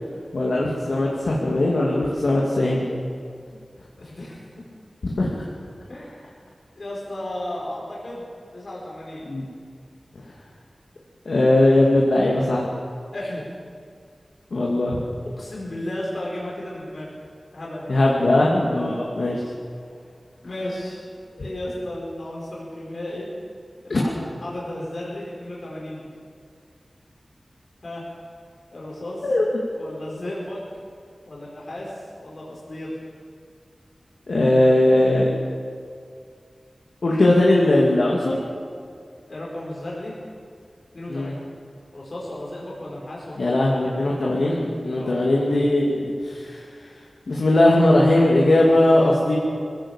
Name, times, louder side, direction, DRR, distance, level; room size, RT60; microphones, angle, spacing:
voice 1, 0.3-2.9 5.0-5.4 9.3-9.5 11.2-12.7 14.5-15.0 17.9-19.4 23.9-24.0 29.2-29.5 34.3-35.3 37.0-38.4 41.1-41.3 43.4-46.6 47.3-49.4, left 1 dB, 75° left, -3 dB, 2.6 m, -19 dB
voice 2, 4.0-4.6 5.9-6.4 6.7-9.2 13.1-13.4 15.4-17.1 17.5-18.5 18.7-19.1 20.4-21.0 21.3-23.3 23.8-26.1 27.8-28.0 28.7-29.3 29.7-30.6 31.3-33.0 39.3-40.1 40.9-41.3 41.9-43.7 45.0-45.3, left 1 dB, 60° left, -5 dB, 5.0 m, -34 dB
21.0 x 16.5 x 7.4 m, 2.2 s
wide cardioid pair, 90°, 0 cm